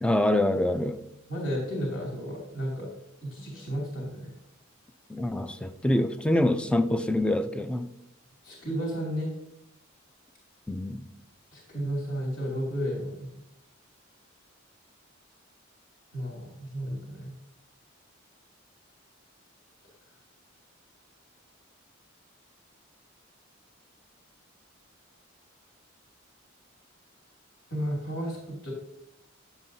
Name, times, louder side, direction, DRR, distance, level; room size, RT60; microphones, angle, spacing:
voice 1, 0.0-1.0 5.1-7.9 10.7-11.1, left 1 dB, 5° left, 10 dB, 0.4 m, -25 dB
voice 2, 1.3-2.9 3.2-4.3 8.4-9.3 11.5-13.3 16.1-17.3 27.7-28.7, equal, 65° left, -3 dB, 2.6 m, -33 dB
10.0 x 7.3 x 2.7 m, 0.80 s
head